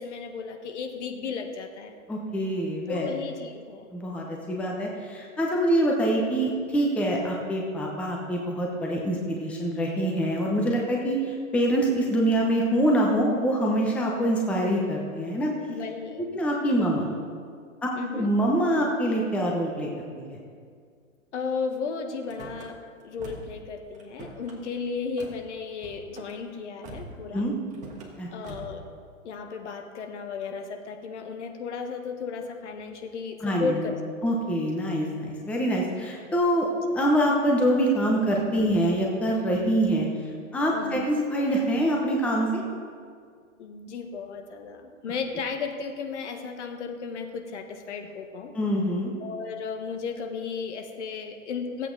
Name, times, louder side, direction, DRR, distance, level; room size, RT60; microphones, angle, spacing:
voice 1, 0.0-1.9 2.9-3.9 15.7-16.3 17.9-18.3 21.3-27.5 28.3-28.8 29.2-34.0 34.2-34.3 40.7-41.1 43.6-48.5 49.2-51.9, left 5 dB, 55° left, 5 dB, 1.4 m, -34 dB
voice 2, 2.1-3.1 3.9-15.5 16.2-17.1 18.1-19.9 20.2-20.4 27.3-27.5 28.2-28.3 33.4-33.8 34.2-36.7 36.9-40.1 40.5-42.6 48.5-49.1, right 1 dB, 5° left, -1 dB, 0.8 m, -25 dB
Car / Slam, 22.2-22.7 23.2-23.6 23.9-24.6 25.2-25.4 25.8-26.3 26.8-27.2 27.7-28.1 28.4-28.8, right 3 dB, 20° right, 1.4 m, -43 dB
16.0 x 8.3 x 3.9 m, 2.1 s
hypercardioid pair, 140°, 41 cm